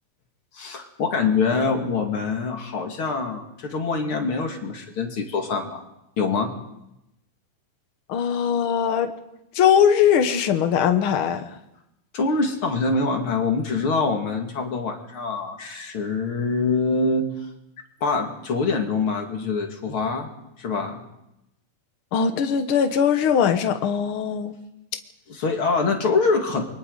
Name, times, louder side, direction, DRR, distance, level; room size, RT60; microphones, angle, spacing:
voice 1, 0.5-5.8 6.2-6.5 12.1-17.2 18.0-20.3 20.6-21.0 25.3-26.6, left 4 dB, 40° left, 3 dB, 2.5 m, -24 dB
voice 2, 8.1-9.1 9.5-11.5 22.1-24.6, left 8 dB, 70° left, 7 dB, 1.2 m, -20 dB
29.0 x 24.0 x 4.0 m, 0.85 s
omnidirectional pair, 4.1 m